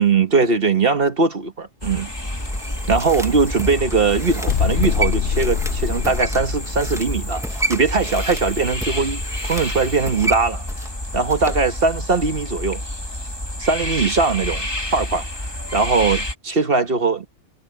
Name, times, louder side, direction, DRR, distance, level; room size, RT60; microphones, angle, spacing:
voice 1, 0.0-2.1 2.9-10.6 11.1-12.8 13.6-15.2 15.7-17.3, right 4 dB, 45° right, 1.5 m, -20 dB
sound 1, 1.8-16.3, left 1 dB, 20° left, 2.9 m, -28 dB
sound 2, 2.3-11.7 12.0-12.1, right 1 dB, ahead, 1.1 m, -32 dB
sound 3, 4.5-7.2, left 9 dB, 60° left, 0.9 m, -24 dB
omnidirectional pair, 1.4 m